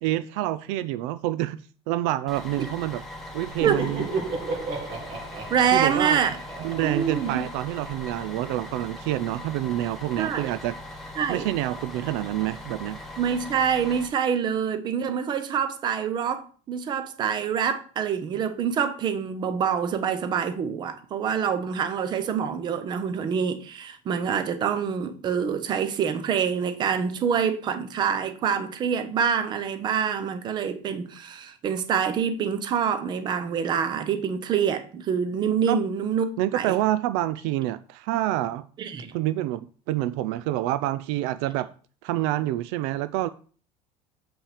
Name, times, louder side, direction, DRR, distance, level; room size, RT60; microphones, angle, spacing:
voice 1, 0.0-1.6 1.9-3.0 3.3-4.1 5.7-6.2 6.6-10.7 11.3-13.0 35.7-35.8 36.4-38.6 39.1-41.7 42.0-43.3, right 15 dB, 70° right, 0.5 m, -27 dB
Bus, 2.3-14.1, left 1 dB, ahead, 1.3 m, -40 dB
Laughter, 3.3-8.0, right 3 dB, 50° right, 2.4 m, -34 dB
voice 2, 5.5-6.3 6.8-7.4 10.2-10.5 11.2-11.5 13.2-36.7 38.8-39.1, right 7 dB, 30° right, 0.9 m, -26 dB
7.2 x 5.5 x 5.0 m
cardioid pair, 175°, 16 cm